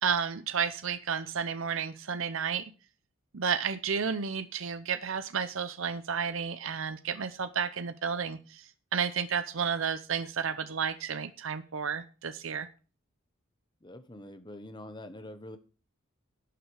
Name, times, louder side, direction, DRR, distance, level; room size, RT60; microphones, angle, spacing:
voice 1, 0.0-2.6 3.3-12.7, right 6 dB, 65° right, 12 dB, 0.7 m, -32 dB
voice 2, 13.8-15.6, left 1 dB, 20° left, 10 dB, 1.0 m, -45 dB
12.0 x 8.2 x 4.7 m, 0.36 s
head